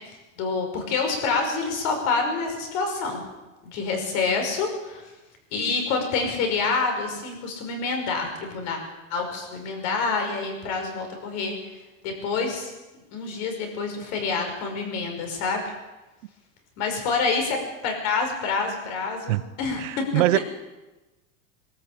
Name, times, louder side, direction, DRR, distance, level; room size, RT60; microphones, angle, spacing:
voice 1, 0.1-3.2 3.6-5.0 5.5-8.8 9.1-11.6 12.0-12.7 13.1-15.6 16.8-17.6 17.8-20.0 20.3-20.4, left 4 dB, 45° left, 3 dB, 5.6 m, -27 dB
voice 2, 19.8-20.4, right 17 dB, 75° right, 15 dB, 1.0 m, -22 dB
23.0 x 13.0 x 8.7 m, 1.1 s
supercardioid pair, 175°, 38 cm